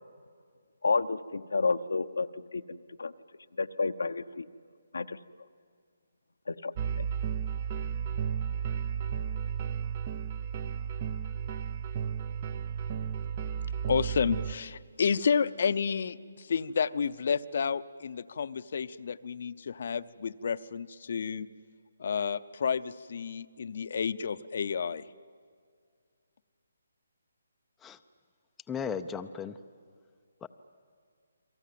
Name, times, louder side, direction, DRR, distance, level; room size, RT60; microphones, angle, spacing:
voice 1, 0.8-3.1 3.6-4.5 4.9-5.2 6.5-6.7 7.0-7.1, left 4 dB, 85° left, 9 dB, 0.9 m, -30 dB
sound 1, 6.8-14.5, right 7 dB, 30° right, 0.8 m, -33 dB
voice 2, 13.9-21.5 22.0-25.0, left 6 dB, 55° left, 14 dB, 0.8 m, -30 dB
voice 3, 28.7-29.6 30.4-30.5, left 6 dB, 10° left, 6 dB, 0.6 m, -35 dB
29.0 x 23.0 x 7.7 m, 2.1 s
hypercardioid pair, 160°, 0 cm